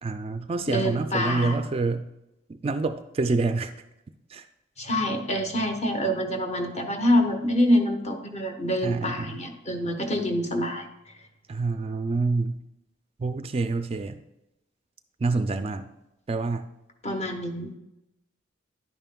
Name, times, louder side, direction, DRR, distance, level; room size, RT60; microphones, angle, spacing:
voice 1, 0.0-2.1 2.5-3.7 4.3-4.5 8.8-9.4 11.5-12.6 13.2-14.2 15.2-15.9 16.3-16.7, right 3 dB, 30° right, 9 dB, 0.3 m, -27 dB
voice 2, 0.7-1.6 4.8-10.9 17.0-17.7, equal, 35° left, 4 dB, 1.0 m, -26 dB
11.0 x 9.1 x 2.3 m, 0.89 s
head